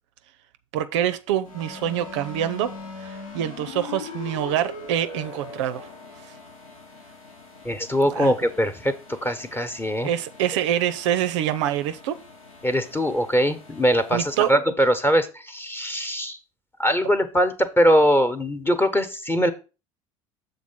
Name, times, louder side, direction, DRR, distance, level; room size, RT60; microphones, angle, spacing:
voice 1, 0.7-2.7 3.0-5.9 8.0-8.3 10.0-12.2 14.1-14.5, right 11 dB, 60° right, 0.5 m, -25 dB
sound 1, 1.4-14.5, left 3 dB, 75° left, 1.5 m, -41 dB
voice 2, 7.6-10.1 12.6-16.4 16.8-19.5, equal, 10° left, 1.1 m, -22 dB
7.2 x 3.9 x 5.7 m
figure-of-eight pair, 65°, 18 cm